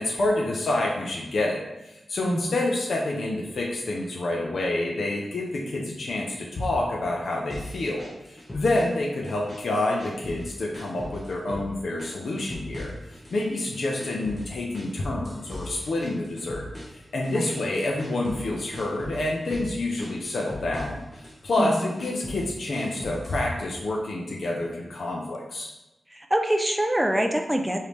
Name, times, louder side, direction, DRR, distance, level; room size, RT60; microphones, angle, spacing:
voice 1, 0.0-12.9 13.3-16.6 16.9-21.0 21.4-25.7, left 2 dB, 60° left, -2 dB, 0.6 m, -28 dB
sound 1, 7.5-9.0 9.2-10.5 10.7-11.7 12.0-13.5 13.7-18.5 18.7-19.7 20.0-21.4 21.7-23.4, left 1 dB, 15° left, 1.1 m, -39 dB
voice 2, 21.6-21.9 26.1-27.8, right 1 dB, 5° right, 4 dB, 0.4 m, -25 dB
5.0 x 2.8 x 3.2 m, 0.97 s
wide cardioid pair, 170°, 0 cm